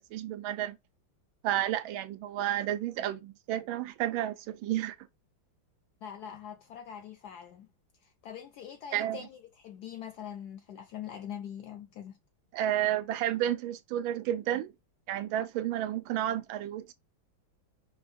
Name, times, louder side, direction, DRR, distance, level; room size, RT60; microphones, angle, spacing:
voice 1, 0.1-0.8 1.4-4.9 8.9-9.2 12.5-14.7 15.1-16.9, right 12 dB, 90° right, 1.4 m, -31 dB
voice 2, 6.0-7.7 8.0-12.2, left 9 dB, 75° left, 0.9 m, -43 dB
5.4 x 2.3 x 2.5 m
omnidirectional pair, 2.1 m